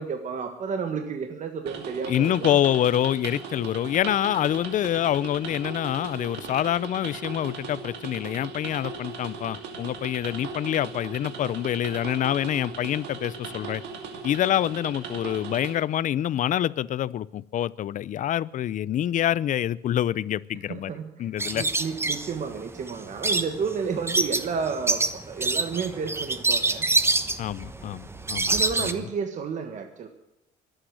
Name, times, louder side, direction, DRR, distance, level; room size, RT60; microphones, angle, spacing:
voice 1, 0.0-2.6 20.7-26.9 28.5-30.1, right 6 dB, 45° right, 1.5 m, -31 dB
sound 1, 1.7-15.7, right 5 dB, 85° right, 2.5 m, -38 dB
voice 2, 2.1-13.8 14.2-20.9 21.2-21.6 27.4-28.5 28.8-28.9, left 11 dB, 50° left, 0.6 m, -26 dB
sound 2, 21.4-28.9, right 2 dB, 15° right, 1.1 m, -26 dB
23.0 x 9.0 x 6.4 m
cardioid pair, 110°, 17 cm